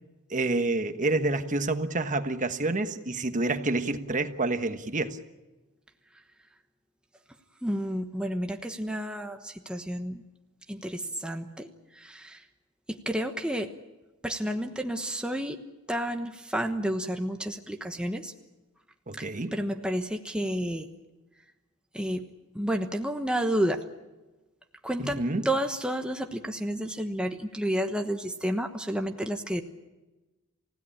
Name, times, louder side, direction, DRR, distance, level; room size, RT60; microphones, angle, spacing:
voice 1, 0.3-5.2 19.1-19.5 25.0-25.4, right 2 dB, 35° right, 1.3 m, -28 dB
voice 2, 7.6-10.2 10.7-12.4 12.9-13.7 14.2-15.6 15.9-18.3 19.2-20.9 21.9-22.3 22.5-23.8 24.8-29.6, equal, 5° right, 1.1 m, -31 dB
28.5 x 16.5 x 8.6 m
head